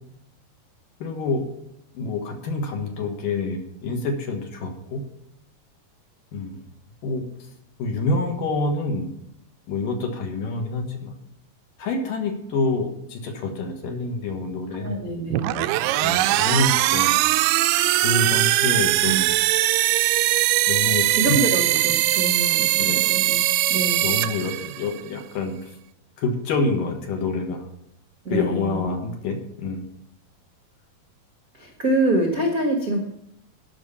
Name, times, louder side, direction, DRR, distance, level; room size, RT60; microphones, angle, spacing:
voice 1, 1.0-1.5 1.9-5.0 6.3-6.6 7.0-7.2 7.8-9.1 9.7-11.2 11.8-15.0 16.0-17.2 17.9-19.3 20.7-21.2 22.8-23.1 24.0-25.7 26.2-27.7 28.3-29.8, left 3 dB, 65° left, 3 dB, 2.9 m, -27 dB
voice 2, 14.7-15.6 19.0-19.3 21.1-23.4 23.7-24.1 28.2-28.9 31.6-33.0, right 1 dB, 55° right, 2 dB, 0.9 m, -25 dB
sound 1, 15.3-25.0, right 17 dB, 85° right, 2.6 m, -21 dB
12.5 x 6.1 x 7.1 m, 0.80 s
omnidirectional pair, 4.6 m